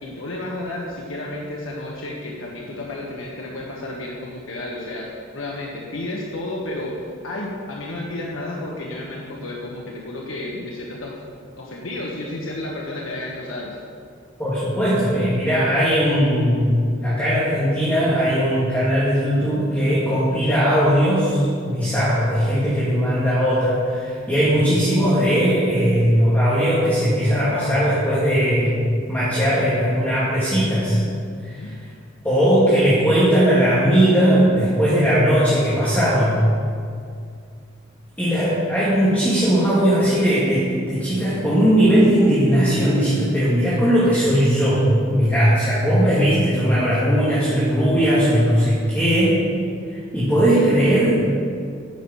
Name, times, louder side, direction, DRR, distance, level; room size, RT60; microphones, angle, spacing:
voice 1, 0.0-6.9 7.2-11.1 11.6-13.8 31.5-31.7, left 1 dB, 75° left, -3 dB, 1.3 m, -32 dB
voice 2, 14.4-31.0 31.4-31.7 32.2-36.4 38.2-49.4 50.1-51.3, equal, 10° left, -9 dB, 2.0 m, -18 dB
9.6 x 6.5 x 7.1 m, 2.2 s
head